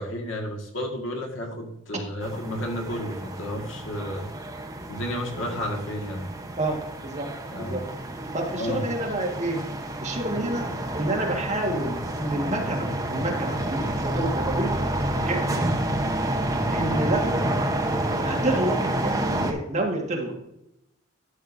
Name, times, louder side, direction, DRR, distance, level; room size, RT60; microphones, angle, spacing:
voice 1, 0.0-4.3 4.9-6.3 7.5-7.8 8.5-9.0 15.4-15.7, equal, 70° left, 1 dB, 1.7 m, -32 dB
sound 1, 2.2-19.5, right 1 dB, 15° right, 0.8 m, -29 dB
voice 2, 6.6-7.3 7.6-7.8 8.3-9.6 10.0-10.7 10.9-14.7 15.2-15.4 16.7-17.5 18.2-20.5, right 1 dB, 35° right, 0 dB, 1.6 m, -28 dB
11.5 x 6.7 x 2.6 m, 0.84 s
head